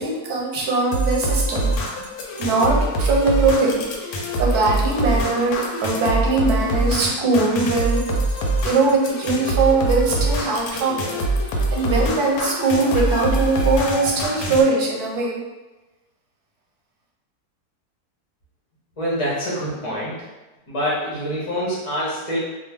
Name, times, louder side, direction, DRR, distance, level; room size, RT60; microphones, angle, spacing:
voice 1, 0.0-1.7 2.4-8.0 8.6-11.3 11.7-15.4, right 3 dB, 85° right, -2 dB, 1.2 m, -21 dB
sound 1, 0.9-14.6, right 1 dB, 80° left, 1.1 m, -24 dB
voice 2, 19.0-20.3 20.7-22.4, equal, 35° left, -7 dB, 0.6 m, -25 dB
2.6 x 2.3 x 3.3 m, 1.1 s
omnidirectional pair, 1.6 m